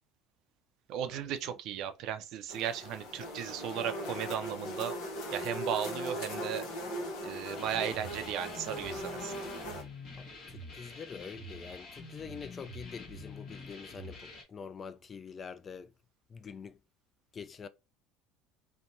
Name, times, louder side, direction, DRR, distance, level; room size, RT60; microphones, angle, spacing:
voice 1, 0.9-4.9 5.3-6.7 7.2-9.4, right 9 dB, 65° right, 0.4 m, -36 dB
sound 1, 2.5-9.8, equal, 70° left, 0.8 m, -39 dB
sound 2, 7.5-14.4, left 2 dB, 50° left, 1.1 m, -47 dB
voice 2, 10.2-15.9 16.3-16.8 17.3-17.7, left 6 dB, 35° left, 0.3 m, -45 dB
2.8 x 2.1 x 2.6 m
supercardioid pair, 85°, 0 cm